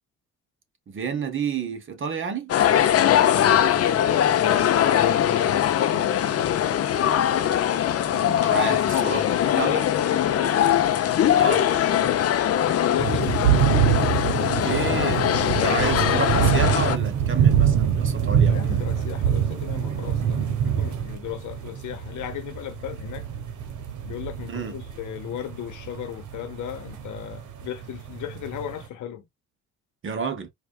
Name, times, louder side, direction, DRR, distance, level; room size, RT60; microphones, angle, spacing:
voice 1, 0.9-2.5 8.0-9.8 11.3-11.6 14.4-18.8 24.5-24.7 30.0-30.5, right 6 dB, 40° right, 1.0 m, -30 dB
sound 1, 2.5-17.0, left 10 dB, 50° left, 0.6 m, -21 dB
voice 2, 3.0-6.8 9.0-11.4 11.8-12.3 12.9-13.4 15.5-15.9 18.5-23.3 24.0-29.3, left 11 dB, 80° left, 1.0 m, -35 dB
sound 2, 13.0-28.8, right 8 dB, 75° right, 1.0 m, -25 dB
4.7 x 2.4 x 2.3 m
cardioid pair, 90°, 30 cm